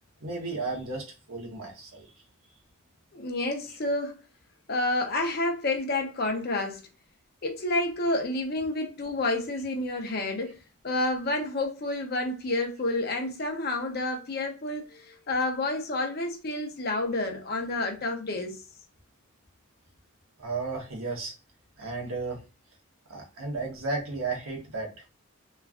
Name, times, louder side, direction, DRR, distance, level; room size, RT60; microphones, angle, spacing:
voice 1, 0.2-2.1 20.4-21.3 21.8-22.4 23.1-24.9, right 3 dB, 80° right, 1.0 m, -34 dB
voice 2, 3.1-4.2 4.7-6.8 7.4-10.6 10.8-18.6, left 2 dB, 45° left, 0.6 m, -29 dB
3.1 x 2.4 x 2.4 m
head